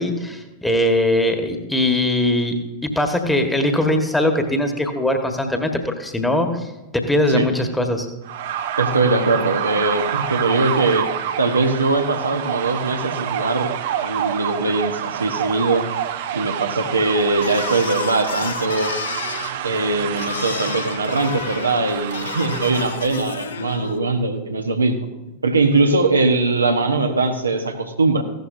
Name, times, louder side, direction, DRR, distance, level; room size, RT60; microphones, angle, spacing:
voice 1, 0.0-2.5 2.8-6.7 6.9-8.1, left 1 dB, 5° left, 5 dB, 1.5 m, -20 dB
sound 1, 8.2-23.1, right 10 dB, 55° right, 0.7 m, -28 dB
voice 2, 8.8-11.1 11.4-13.7 14.0-15.9 16.3-19.0 19.6-25.1 25.4-28.2, right 3 dB, 80° right, 5 dB, 1.0 m, -21 dB
sound 2, 17.4-24.0, left 8 dB, 65° left, 0.6 m, -31 dB
15.5 x 12.0 x 2.6 m, 1.0 s
figure-of-eight pair, 90°, 0 cm